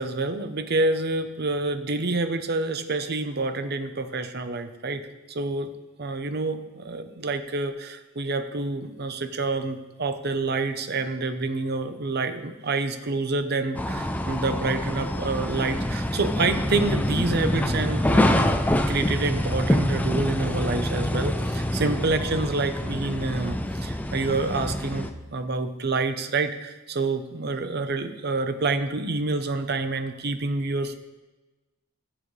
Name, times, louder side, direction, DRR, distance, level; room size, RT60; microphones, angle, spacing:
voice 1, 0.0-5.7 6.0-18.5 18.9-31.0, right 3 dB, 50° right, 8 dB, 0.7 m, -28 dB
sound 1, 13.7-25.1, left 1 dB, 10° left, 0.5 m, -26 dB
15.0 x 7.6 x 3.2 m, 1.1 s
head